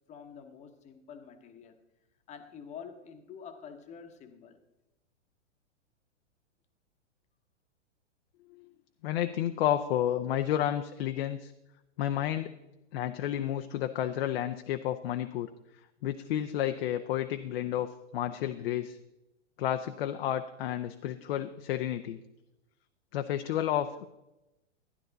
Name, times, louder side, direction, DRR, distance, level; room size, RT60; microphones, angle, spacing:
voice 1, 0.0-1.8 2.3-4.6, left 7 dB, 20° left, 8 dB, 1.0 m, -47 dB
voice 2, 9.0-11.5 12.0-12.5 12.9-15.5 16.0-19.0 19.6-22.2 23.1-24.1, left 11 dB, 50° left, 8 dB, 0.6 m, -31 dB
12.5 x 10.5 x 3.9 m, 0.96 s
hypercardioid pair, 140°, 37 cm